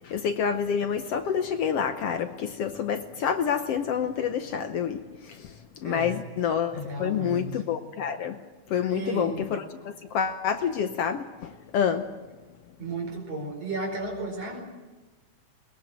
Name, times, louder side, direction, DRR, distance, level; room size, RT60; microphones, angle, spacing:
voice 1, 0.0-8.4 8.7-12.1, left 7 dB, 65° left, 8 dB, 1.6 m, -28 dB
voice 2, 5.8-6.2 6.7-7.6 8.9-9.4 12.8-14.6, right 2 dB, 55° right, 2 dB, 6.1 m, -33 dB
21.5 x 20.5 x 9.2 m, 1.2 s
omnidirectional pair, 3.6 m